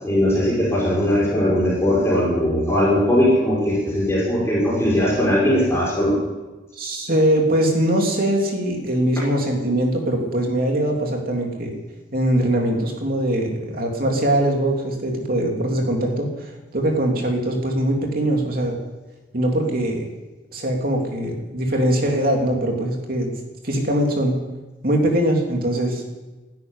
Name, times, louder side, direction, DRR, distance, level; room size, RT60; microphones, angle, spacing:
voice 1, 0.0-6.2, equal, 15° left, -7 dB, 5.2 m, -19 dB
voice 2, 6.8-11.7 12.1-18.8 19.3-20.1 20.5-23.3 23.6-24.4 24.8-26.0, right 1 dB, 55° right, 1 dB, 3.1 m, -22 dB
12.5 x 11.0 x 9.8 m, 1.2 s
head